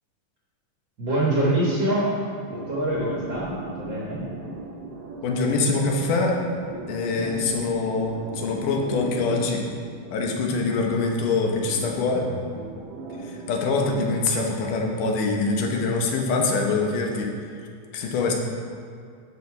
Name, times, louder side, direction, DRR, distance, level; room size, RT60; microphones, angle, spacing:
voice 1, 1.0-2.2 2.5-4.2 7.1-7.3, right 1 dB, 50° right, -6 dB, 1.6 m, -25 dB
sound 1, 2.5-10.7 11.4-13.6, right 3 dB, 85° right, 2.6 m, -38 dB
voice 2, 5.2-6.4 6.9-9.6 10.1-12.3 13.2-17.3 17.9-18.3, left 3 dB, 80° left, 1 dB, 2.5 m, -24 dB
11.0 x 4.7 x 4.8 m, 2.3 s
omnidirectional pair, 3.7 m